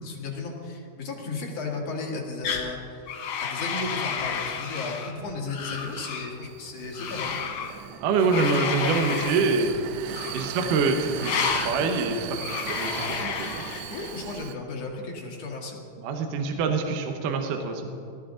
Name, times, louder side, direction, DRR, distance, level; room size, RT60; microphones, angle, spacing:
voice 1, 0.0-3.1 3.4-7.3 8.2-8.9 13.9-15.8, left 3 dB, 50° left, -1 dB, 2.6 m, -35 dB
sound 1, 2.4-2.7 3.1-5.1 5.5-6.3 6.9-7.7 8.3-9.4 10.1-10.6 11.2-11.7 12.4-14.1, left 6 dB, 85° left, 3.1 m, -31 dB
Vehicle, 5.2-14.5, right 11 dB, 90° right, 2.4 m, -38 dB
voice 2, 8.0-9.8 10.3-12.4 12.7-13.6 16.0-17.9, right 4 dB, 75° right, 4 dB, 2.4 m, -25 dB
19.0 x 12.0 x 3.8 m, 2.6 s
omnidirectional pair, 4.1 m